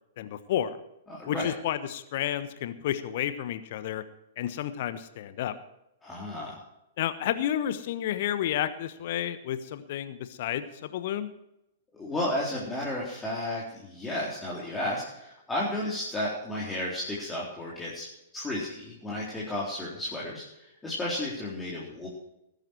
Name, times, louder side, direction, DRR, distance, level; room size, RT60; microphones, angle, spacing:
voice 1, 0.2-0.8 1.3-4.0 4.4-5.5 7.0-11.3, left 11 dB, 45° left, 12 dB, 1.2 m, -31 dB
voice 2, 1.1-1.5 6.0-6.6 11.9-18.1 18.3-22.1, left 1 dB, 10° left, -6 dB, 3.9 m, -33 dB
20.0 x 10.5 x 4.5 m, 0.86 s
figure-of-eight pair, 110°, 0 cm